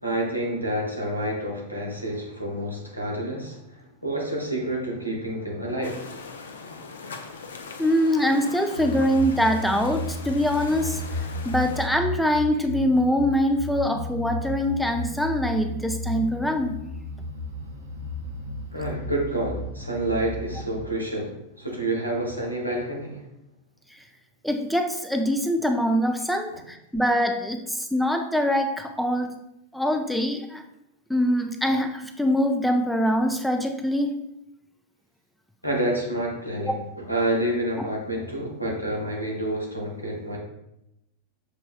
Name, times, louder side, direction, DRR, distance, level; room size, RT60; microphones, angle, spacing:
voice 1, 0.0-6.1 18.7-23.2 35.6-40.4, right 1 dB, 90° right, -3 dB, 1.1 m, -28 dB
sound 1, 5.8-11.9, left 4 dB, 65° left, 0.4 m, -40 dB
voice 2, 7.8-11.0 11.4-16.8 24.4-29.3 29.7-30.6 31.1-34.1 36.6-36.8 37.8-37.9, equal, ahead, 5 dB, 0.4 m, -24 dB
sound 2, 8.7-20.8, left 1 dB, 70° right, 0.6 m, -34 dB
6.5 x 3.1 x 2.4 m, 0.84 s
figure-of-eight pair, 90°, 0 cm